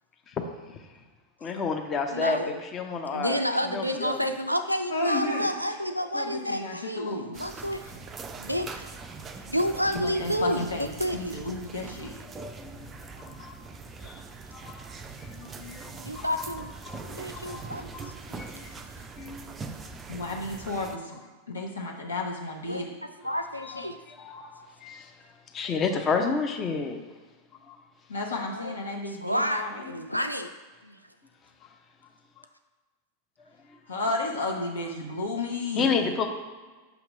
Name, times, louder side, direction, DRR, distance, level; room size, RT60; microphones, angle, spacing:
voice 1, 1.4-3.4 3.7-4.2 12.3-12.9 13.2-13.6 14.0-14.2 14.5-14.8 15.2-16.5 16.9-17.0 17.3-17.6 17.9-18.1 18.4-18.8 19.2-19.6 23.3-25.1 25.5-27.0 27.7-27.8 35.8-36.3, left 5 dB, 25° left, 4 dB, 0.6 m, -31 dB
voice 2, 2.1-2.6 3.1-7.9 8.4-8.8 9.5-11.5 16.0-16.7 17.0-17.9 18.3-18.4 22.7-24.0 28.5-28.7 29.2-30.5 30.8-31.0, equal, 90° right, 7 dB, 0.3 m, -30 dB
voice 3, 4.9-5.5 6.1-8.0 9.9-12.1 20.1-21.2 21.5-23.0 28.1-29.9 33.9-36.1, left 2 dB, 70° left, -1 dB, 1.0 m, -32 dB
sound 1, 7.3-21.0, right 4 dB, 20° right, 0.4 m, -42 dB
5.9 x 2.9 x 5.5 m, 1.3 s
figure-of-eight pair, 90°, 0 cm